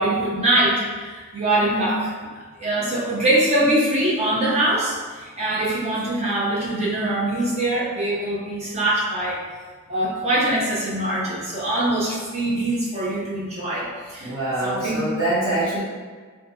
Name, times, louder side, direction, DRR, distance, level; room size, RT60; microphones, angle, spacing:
voice 1, 0.0-2.1 2.6-9.4 9.9-14.3 14.6-15.1, right 1 dB, 30° right, -7 dB, 0.7 m, -23 dB
voice 2, 14.2-15.8, right 1 dB, 60° right, -13 dB, 0.8 m, -24 dB
2.7 x 2.2 x 2.7 m, 1.5 s
head